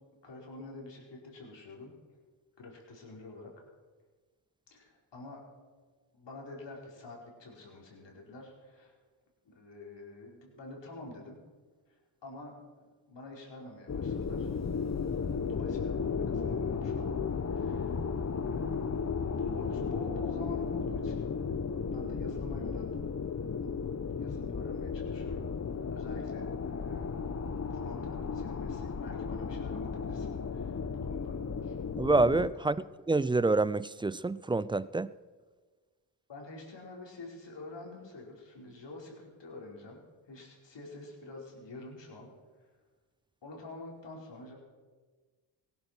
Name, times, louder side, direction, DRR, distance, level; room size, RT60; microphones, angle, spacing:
voice 1, 0.2-1.9 2.6-3.6 4.7-5.4 6.1-8.9 9.4-11.4 11.9-12.5 13.1-14.5 15.4-17.1 17.5-18.0 18.5-18.8 19.1-21.3 21.8-23.0 23.7-25.5 25.9-27.3 27.7-31.7 32.6-32.8 36.3-40.0 40.3-42.3 43.4-44.6, left 2 dB, 60° left, 5.0 m, -47 dB
sound 1, 13.9-32.5, left 5 dB, 35° left, 1.1 m, -34 dB
voice 2, 32.0-32.8 33.1-35.1, right 3 dB, 10° right, 0.3 m, -27 dB
17.0 x 11.5 x 6.0 m
supercardioid pair, 50°, 50 cm